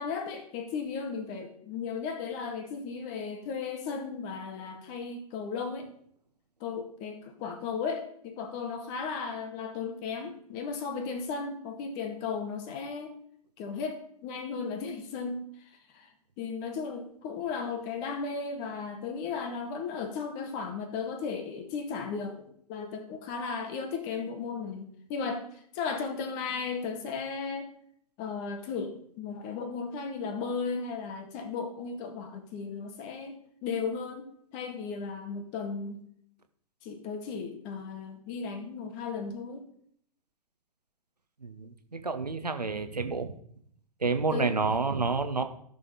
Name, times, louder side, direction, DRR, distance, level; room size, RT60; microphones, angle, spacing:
voice 1, 0.0-5.9 6.6-13.1 13.6-27.7 28.2-36.0 36.8-39.7 44.3-44.6, left 5 dB, 35° left, 6 dB, 1.8 m, -35 dB
voice 2, 41.4-43.3 44.0-45.4, right 4 dB, 85° right, 8 dB, 1.1 m, -29 dB
13.5 x 6.8 x 4.1 m, 0.65 s
figure-of-eight pair, 110°, 20 cm